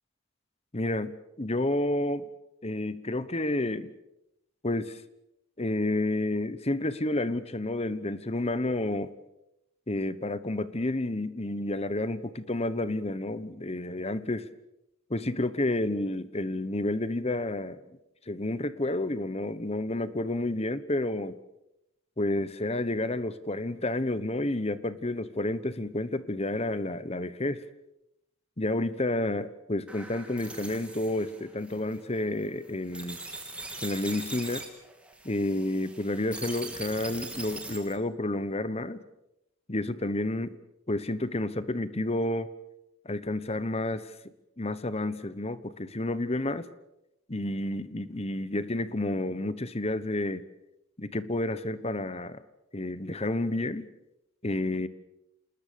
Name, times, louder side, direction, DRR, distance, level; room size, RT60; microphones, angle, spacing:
voice 1, 0.7-2.3 2.6-3.9 4.6-5.0 5.6-9.1 9.9-14.5 15.1-17.8 18.3-21.4 22.2-27.6 28.6-33.2 33.8-34.6 35.2-39.0 39.7-40.6 40.9-42.5 43.0-44.1 44.6-46.7 47.3-50.4 51.0-52.4 52.7-53.9 54.4-54.9, left 1 dB, 30° left, 15 dB, 1.1 m, -30 dB
sound 1, 29.9-38.0, right 2 dB, 5° right, 3.1 m, -42 dB
28.5 x 20.0 x 6.9 m, 0.87 s
head